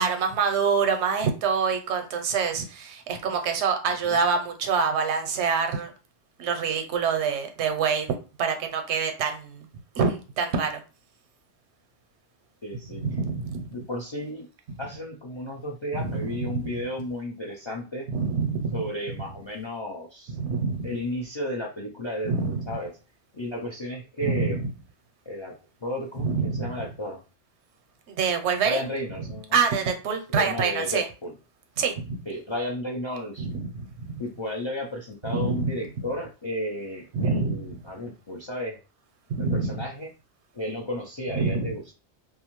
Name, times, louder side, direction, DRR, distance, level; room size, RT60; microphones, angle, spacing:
voice 1, 0.0-5.9 6.4-9.7 10.0-10.8 12.9-13.7 15.9-16.7 18.1-18.8 20.4-20.9 22.2-22.7 24.2-24.6 26.2-26.8 28.1-28.8 29.5-31.0 31.8-32.2 33.4-34.1 35.2-35.7 37.1-37.8 39.3-39.8 41.3-41.9, right 5 dB, 80° right, 6 dB, 0.9 m, -26 dB
voice 2, 12.6-13.0 13.7-14.5 14.8-18.1 18.7-20.4 20.8-22.9 23.3-24.6 25.3-25.5 25.8-27.2 28.6-29.6 30.3-31.3 32.3-33.5 34.2-38.8 39.4-40.1 40.5-41.9, left 1 dB, 50° left, -1 dB, 0.3 m, -33 dB
2.5 x 2.3 x 3.0 m, 0.34 s
omnidirectional pair, 1.2 m